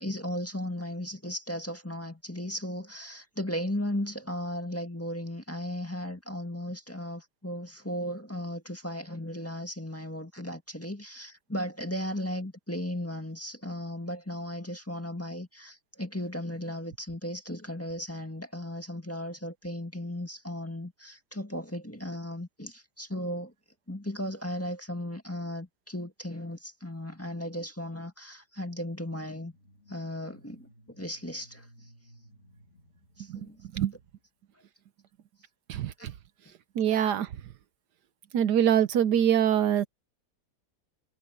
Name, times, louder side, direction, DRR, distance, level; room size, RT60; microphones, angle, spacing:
voice 1, 0.0-23.5 23.9-29.5 29.9-30.7 31.0-31.7 33.2-33.6 36.0-36.1, left 1 dB, 10° left, 1.8 m, -36 dB
sound 1, 29.4-34.2, equal, 45° left, 3.0 m, -58 dB
voice 2, 36.8-37.3 38.3-39.9, right 10 dB, 75° right, 1.4 m, -24 dB
omnidirectional pair, 1.8 m